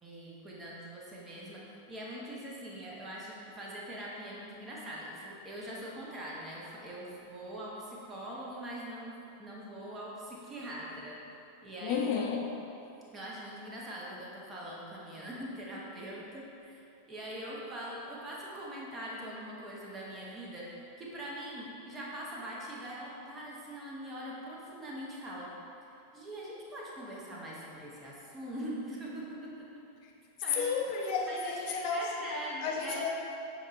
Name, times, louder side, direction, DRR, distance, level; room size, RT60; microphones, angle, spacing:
voice 1, 0.0-11.2 11.6-12.5 13.1-16.8 17.1-25.5 25.9-29.7 30.4-30.8 31.3-33.1, right 1 dB, 20° right, -5 dB, 0.9 m, -42 dB
voice 2, 11.8-12.6 30.6-32.3 32.6-33.1, left 5 dB, 45° left, 0 dB, 0.4 m, -32 dB
6.4 x 3.1 x 2.5 m, 2.7 s
figure-of-eight pair, 90°, 0 cm